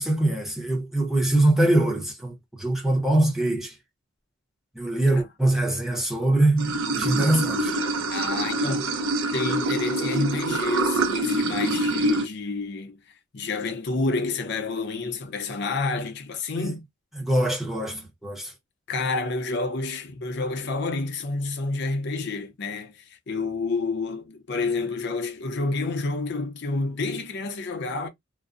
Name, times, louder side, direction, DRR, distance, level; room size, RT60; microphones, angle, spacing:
voice 1, 0.0-3.8 4.7-7.8 16.6-16.7 17.2-18.5, right 1 dB, ahead, 0.6 m, -23 dB
Water / Sink (filling or washing), 6.6-12.3, right 2 dB, 75° right, 0.6 m, -25 dB
voice 2, 8.1-8.9 9.3-13.0 13.3-16.8 18.9-28.1, left 3 dB, 55° left, 0.5 m, -29 dB
2.5 x 2.0 x 2.4 m
head